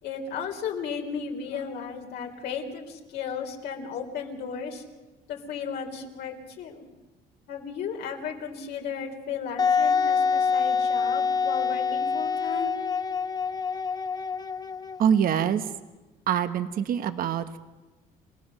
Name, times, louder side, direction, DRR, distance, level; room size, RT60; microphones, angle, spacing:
voice 1, 0.0-4.8 5.3-6.8 7.5-12.8, left 6 dB, 75° left, 2 dB, 3.5 m, -35 dB
Wind instrument woodwind instrument, 9.6-15.2, left 5 dB, 25° left, 0.8 m, -26 dB
voice 2, 15.0-15.6 16.3-17.6, right 8 dB, 60° right, 10 dB, 1.1 m, -24 dB
28.5 x 17.5 x 6.6 m, 1.1 s
cardioid pair, 110°, 17 cm